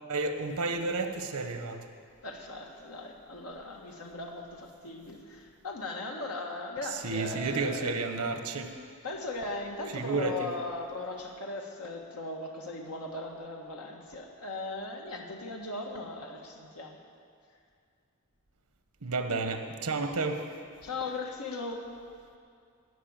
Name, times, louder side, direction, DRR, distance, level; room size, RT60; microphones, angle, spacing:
voice 1, 0.1-1.8 6.8-8.7 9.9-10.5 19.0-20.4, right 3 dB, 85° right, 7 dB, 1.0 m, -31 dB
voice 2, 2.2-7.9 9.0-17.0 20.8-21.8, left 2 dB, 80° left, 1 dB, 1.5 m, -38 dB
14.5 x 6.2 x 8.8 m, 2.3 s
head